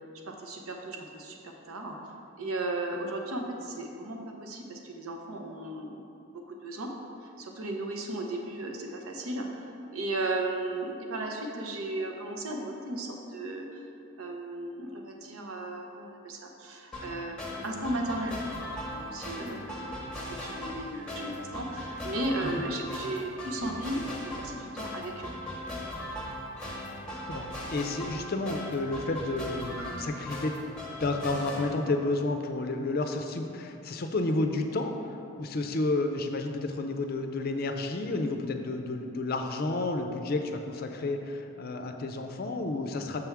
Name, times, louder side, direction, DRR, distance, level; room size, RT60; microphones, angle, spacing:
voice 1, 0.3-1.9 2.4-6.1 6.3-6.9 7.4-9.5 9.9-13.8 14.2-18.4 18.8-20.0 20.3-25.3, right 2 dB, 90° right, 2 dB, 0.8 m, -35 dB
sound 1, 16.9-31.7, left 1 dB, 5° left, 0.8 m, -38 dB
voice 2, 27.3-30.6 31.0-43.2, left 2 dB, 45° left, 5 dB, 0.5 m, -31 dB
6.8 x 3.5 x 5.8 m, 2.6 s
head